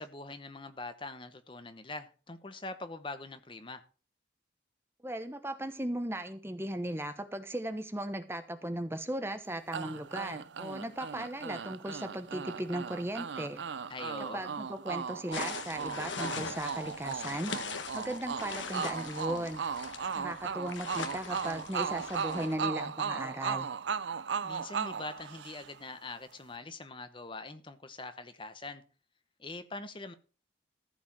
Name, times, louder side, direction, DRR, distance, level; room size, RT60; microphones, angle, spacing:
voice 1, 0.0-3.8 13.9-14.4 24.4-28.8 29.4-30.1, left 2 dB, 25° left, 0.9 m, -43 dB
voice 2, 5.0-13.6 14.3-17.5 17.9-19.6 20.2-23.7, right 1 dB, 15° right, 1.0 m, -37 dB
sound 1, 9.7-25.9, right 6 dB, 80° right, 0.5 m, -37 dB
sound 2, 15.3-22.6, left 5 dB, 90° left, 1.4 m, -41 dB
14.5 x 4.8 x 7.4 m
head